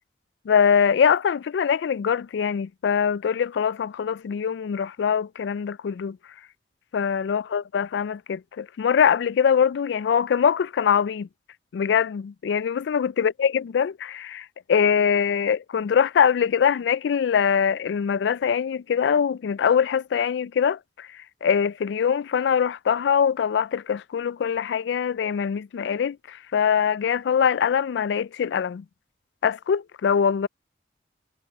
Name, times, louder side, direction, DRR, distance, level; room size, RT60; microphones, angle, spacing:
voice 1, 0.5-6.2 6.9-11.3 11.7-21.1 21.4-28.8 29.4-30.5, left 7 dB, 75° left, 0.3 m, -23 dB
head